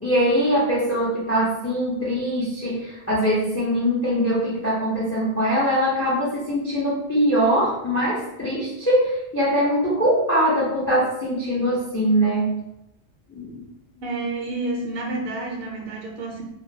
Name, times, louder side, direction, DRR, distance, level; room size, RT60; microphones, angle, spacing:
voice 1, 0.0-12.6 13.3-13.6, equal, 25° left, -7 dB, 0.3 m, -22 dB
voice 2, 14.0-16.4, right 2 dB, 65° right, -1 dB, 0.7 m, -29 dB
2.3 x 2.2 x 2.7 m, 0.89 s
omnidirectional pair, 1.2 m